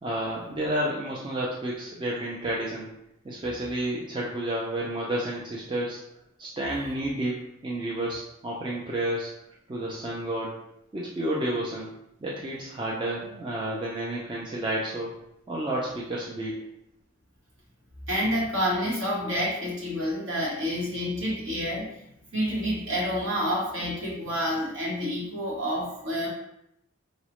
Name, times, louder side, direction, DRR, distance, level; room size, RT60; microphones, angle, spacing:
voice 1, 0.0-2.9 3.2-6.0 6.4-9.3 9.7-10.6 10.9-11.9 12.2-15.1 15.5-16.6, right 1 dB, 20° right, -4 dB, 0.3 m, -30 dB
voice 2, 18.1-21.9 22.3-26.3, equal, 60° right, -4 dB, 1.1 m, -28 dB
3.9 x 2.0 x 2.9 m, 0.81 s
head